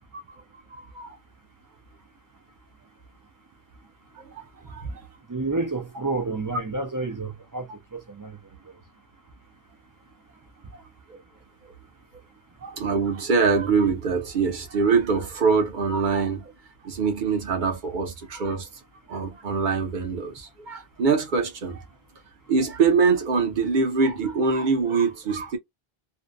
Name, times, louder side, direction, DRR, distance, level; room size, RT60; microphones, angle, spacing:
voice 1, 0.7-1.1 4.2-4.4 4.7-5.0 10.7-10.8 11.1-11.2 11.6-11.7 12.6-16.5 16.8-18.7 19.1-21.8 22.5-25.6, right 5 dB, 55° right, 0.8 m, -24 dB
voice 2, 5.3-8.4 8.7-8.8, right 3 dB, 30° right, 0.4 m, -30 dB
2.5 x 2.1 x 2.5 m
omnidirectional pair, 1.1 m